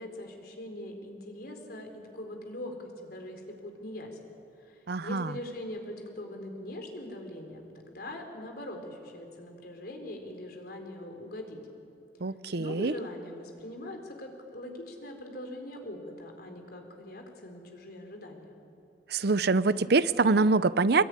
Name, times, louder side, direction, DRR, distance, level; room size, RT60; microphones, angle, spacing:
voice 1, 0.0-1.9 2.1-4.2 4.6-11.6 12.6-18.5, left 1 dB, 60° left, 3 dB, 4.2 m, -42 dB
voice 2, 4.9-5.3 12.2-12.9 19.1-21.0, right 3 dB, 65° right, 15 dB, 0.7 m, -24 dB
25.0 x 22.0 x 9.8 m, 2.7 s
head